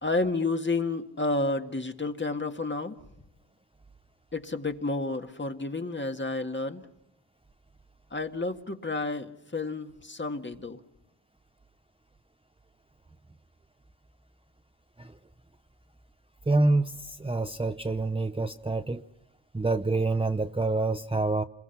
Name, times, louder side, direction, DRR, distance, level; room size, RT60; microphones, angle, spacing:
voice 1, 0.0-3.0 4.3-6.9 8.1-10.8, left 2 dB, 25° left, 6 dB, 1.9 m, -30 dB
voice 2, 16.5-19.0 19.5-21.4, right 2 dB, 10° right, 7 dB, 0.8 m, -27 dB
28.0 x 22.0 x 5.9 m, 0.90 s
cardioid pair, 60°, 46 cm